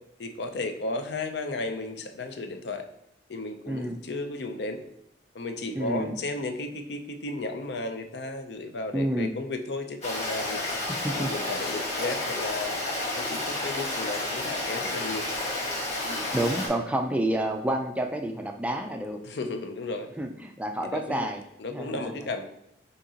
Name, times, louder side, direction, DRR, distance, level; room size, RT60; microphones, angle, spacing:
voice 1, 0.2-2.9 3.3-4.8 5.3-10.6 11.1-12.9 13.1-15.3 16.0-16.3 19.2-20.1 20.8-21.3 21.6-22.4, left 2 dB, 70° left, 7 dB, 0.5 m, -34 dB
voice 2, 3.7-4.0 5.8-6.2 8.9-9.3 10.9-11.3 16.3-19.2 20.2-21.4 21.7-22.3, right 1 dB, 10° right, 4 dB, 0.3 m, -29 dB
Stream, 10.0-16.7, left 2 dB, 40° left, 1.6 m, -31 dB
6.3 x 2.9 x 2.8 m, 0.80 s
head